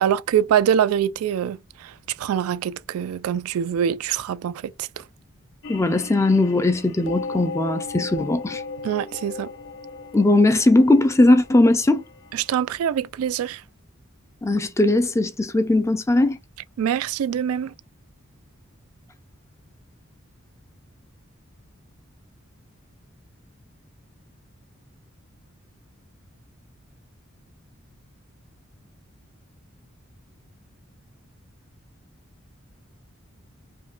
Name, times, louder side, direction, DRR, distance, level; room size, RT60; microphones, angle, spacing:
voice 1, 0.0-4.9 8.8-9.5 12.3-13.6 16.8-17.7, right 9 dB, 90° right, 0.3 m, -24 dB
sound 1, 5.6-12.5, left 4 dB, 65° left, 0.6 m, -36 dB
voice 2, 5.7-8.6 10.1-12.0 14.4-16.4, left 2 dB, 15° left, 0.4 m, -19 dB
5.0 x 2.2 x 2.4 m
head